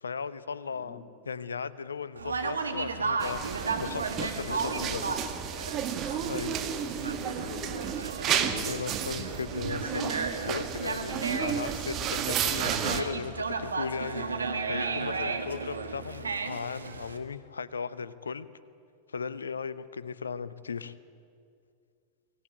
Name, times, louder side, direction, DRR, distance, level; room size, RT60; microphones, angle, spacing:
voice 1, 0.0-5.0 6.3-6.5 8.6-10.1 10.5-14.3 14.6-18.5 19.1-20.9, left 5 dB, 75° left, 16 dB, 0.8 m, -37 dB
voice 2, 0.7-1.0 4.4-5.2 6.0-6.8 7.1-7.9 8.2-9.4 11.1-11.6 15.2-15.4, left 3 dB, 40° left, 3 dB, 3.5 m, -43 dB
Conversation, 2.2-17.2, right 4 dB, 75° right, 1.6 m, -34 dB
sound 1, 3.2-13.0, right 9 dB, 30° right, 1.7 m, -32 dB
23.0 x 17.5 x 9.3 m, 2.3 s
figure-of-eight pair, 90°, 0 cm